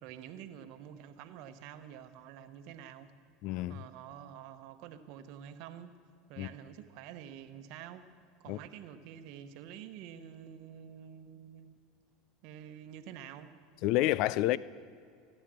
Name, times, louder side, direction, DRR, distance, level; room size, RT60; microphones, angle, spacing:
voice 1, 0.0-3.1 3.7-5.9 6.3-8.1 8.4-11.8 12.4-13.5, right 9 dB, 65° right, 1.0 m, -48 dB
voice 2, 3.4-3.8 6.4-6.5 8.5-8.6 13.8-14.6, left 16 dB, 60° left, 0.4 m, -29 dB
15.0 x 10.0 x 7.5 m
hypercardioid pair, 90°, 0 cm